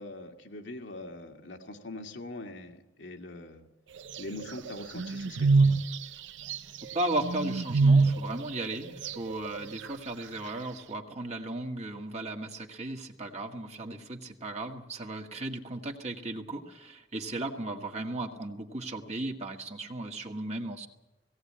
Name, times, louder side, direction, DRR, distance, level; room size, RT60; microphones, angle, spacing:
voice 1, 0.0-3.7 4.2-5.7, left 2 dB, 85° left, 3 dB, 2.2 m, -42 dB
sound 1, 4.1-6.0 6.5-6.6 6.9-7.0 7.2-8.3 8.6-9.9, right 3 dB, 85° right, 0.6 m, -24 dB
voice 2, 6.9-20.9, right 2 dB, 40° right, 2 dB, 1.8 m, -36 dB
18.0 x 17.5 x 8.7 m, 0.99 s
head